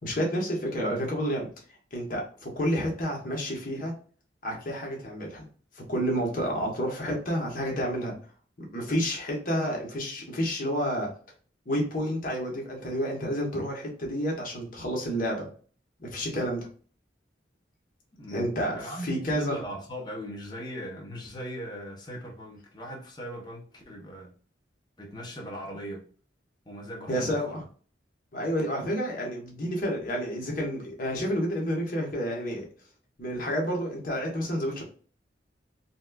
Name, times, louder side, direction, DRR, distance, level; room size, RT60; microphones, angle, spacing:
voice 1, 0.0-1.5 1.9-3.9 4.4-5.5 5.7-8.1 8.6-11.1 11.7-15.5 16.0-16.7 18.3-19.6 27.1-27.6 28.3-32.7 33.2-34.8, equal, 45° left, 1.1 m, -30 dB
voice 2, 18.1-24.3 25.0-26.1 26.6-27.6, equal, 25° left, 0.8 m, -39 dB
4.1 x 2.2 x 2.3 m
head